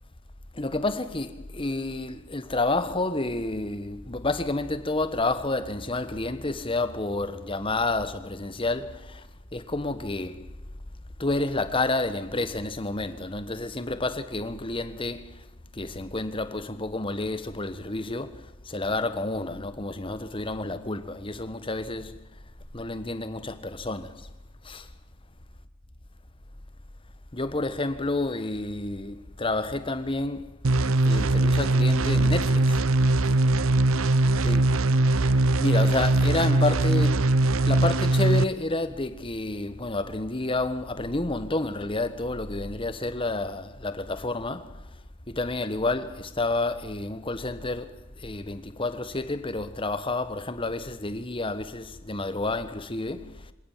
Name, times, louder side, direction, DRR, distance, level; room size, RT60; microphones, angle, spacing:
voice 1, 0.5-9.2 9.5-10.4 11.2-15.3 15.7-18.4 18.6-22.2 22.7-24.1 24.6-24.9 27.3-30.5 31.0-32.8 34.4-34.6 35.6-37.3 37.7-44.7 45.3-53.3, left 2 dB, 25° left, 1.3 m, -29 dB
sound 1, 30.6-38.4, right 2 dB, 80° right, 0.8 m, -21 dB
26.5 x 18.0 x 7.4 m
head